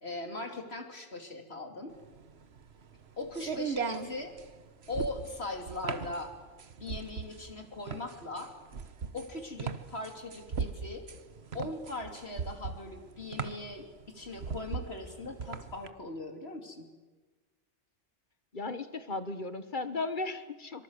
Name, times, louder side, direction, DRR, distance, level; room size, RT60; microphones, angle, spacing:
voice 1, 0.0-1.9 3.2-4.3 4.9-6.3 6.8-8.5 9.1-11.0 11.5-16.9, left 2 dB, 60° left, 4 dB, 3.2 m, -40 dB
sound 1, 2.0-15.9, right 6 dB, 65° right, 1.5 m, -38 dB
voice 2, 18.5-20.8, left 3 dB, 45° left, 11 dB, 1.5 m, -36 dB
25.0 x 24.0 x 8.1 m, 1.3 s
omnidirectional pair, 1.2 m